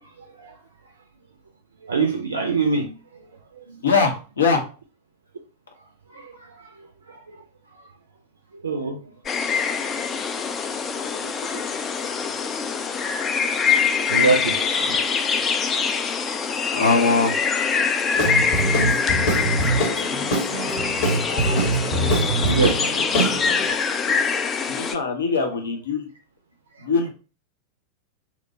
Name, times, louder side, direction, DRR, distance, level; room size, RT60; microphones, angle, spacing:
voice 1, 1.8-2.9 3.6-3.7 6.1-6.7 7.1-7.4 8.6-9.0 11.2-11.8 13.4-13.8 14.1-15.1 19.1-19.3 19.8-20.0 20.4-20.5 21.1-23.0 23.7-23.8, right 4 dB, 70° right, 0.4 m, -27 dB
voice 2, 3.8-4.6 16.7-17.3 24.7-26.1 26.8-27.1, left 4 dB, 70° left, 0.6 m, -21 dB
sound 1, 9.3-25.0, left 6 dB, 25° left, 0.3 m, -24 dB
Guitar / Drum, 18.1-23.7, right 1 dB, 50° left, 0.9 m, -23 dB
2.8 x 2.1 x 2.7 m
figure-of-eight pair, 90°, 0 cm